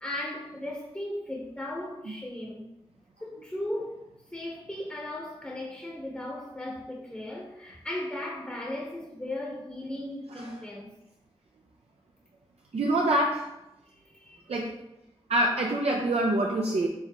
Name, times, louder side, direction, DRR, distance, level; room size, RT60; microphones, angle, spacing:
voice 1, 0.0-2.6 3.2-4.0 4.3-10.9 14.0-14.5, left 1 dB, 10° left, -3 dB, 0.9 m, -36 dB
voice 2, 12.7-13.5 14.5-14.7 15.3-16.9, right 1 dB, 70° right, -1 dB, 0.5 m, -25 dB
4.6 x 3.2 x 3.0 m, 0.90 s
cardioid pair, 40°, 11 cm